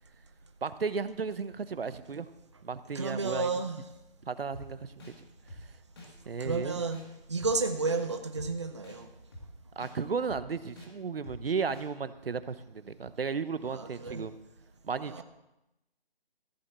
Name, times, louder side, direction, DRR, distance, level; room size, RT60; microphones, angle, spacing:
voice 1, 0.6-2.3 2.6-3.5 4.3-4.9 6.3-6.8 9.8-14.3 14.8-15.2, right 5 dB, 70° right, 14 dB, 0.8 m, -34 dB
voice 2, 2.9-3.8 6.4-7.0 7.3-9.1 13.7-14.3 15.0-15.2, right 3 dB, 30° right, 6 dB, 0.7 m, -32 dB
sound 1, 4.5-4.7 5.0-5.1 5.5-5.6 6.0-6.1 6.4-6.6 6.9-7.1 7.4-7.5 7.9-8.0 8.4-8.5 8.8-9.0 9.3-9.5 9.8-9.9 10.3-10.4 10.8-10.9 11.2-11.4 11.7-11.9, left 1 dB, 25° left, 2.0 m, -46 dB
14.5 x 7.0 x 7.3 m, 0.92 s
hypercardioid pair, 175°, 31 cm